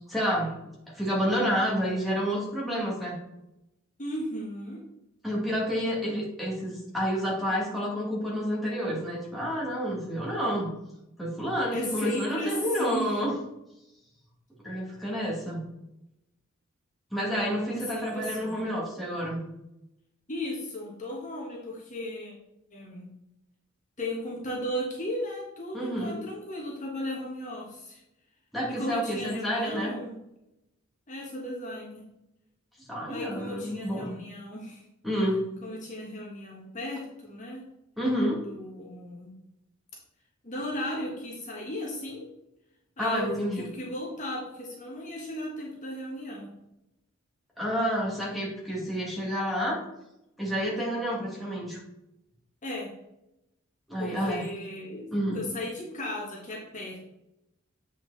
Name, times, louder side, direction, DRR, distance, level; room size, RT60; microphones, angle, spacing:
voice 1, 0.1-0.5 0.9-3.2 5.2-10.7 11.2-13.4 14.6-15.6 17.1-19.4 25.7-26.1 28.5-29.9 32.9-34.2 35.0-35.4 38.0-38.4 43.0-43.7 47.6-49.8 50.4-51.8 53.9-54.4 55.1-55.4, equal, ahead, -4 dB, 2.3 m, -29 dB
voice 2, 4.0-4.8 11.7-13.2 17.7-18.6 20.3-22.3 22.7-23.1 24.0-28.0 28.7-30.1 31.1-32.0 33.0-34.8 35.6-37.7 38.4-39.3 40.4-42.3 43.0-46.5 52.6-52.9 54.0-55.1 55.3-57.0, left 1 dB, 40° left, -2 dB, 1.7 m, -35 dB
8.3 x 4.7 x 4.1 m, 0.84 s
head